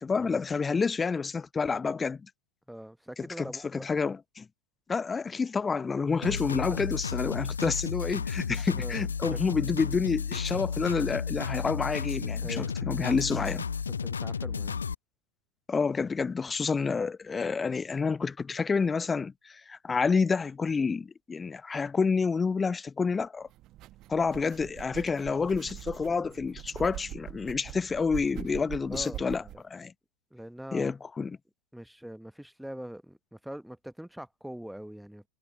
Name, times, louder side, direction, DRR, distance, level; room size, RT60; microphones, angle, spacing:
voice 1, 0.0-2.2 3.4-4.4 4.9-13.6 15.7-23.5 24.1-29.9 30.7-31.4, left 5 dB, 15° left, 0.9 m, -29 dB
voice 2, 2.7-3.9 6.2-6.4 6.7-6.9 8.7-9.4 12.4-12.7 13.9-14.8 28.8-29.6 30.3-30.9 31.7-35.3, equal, ahead, 1.2 m, -43 dB
sound 1, 6.2-14.9, left 6 dB, 70° left, 0.5 m, -33 dB
sound 2, 23.5-29.6, right 16 dB, 35° right, 1.1 m, -43 dB
figure-of-eight pair, 90°, 0 cm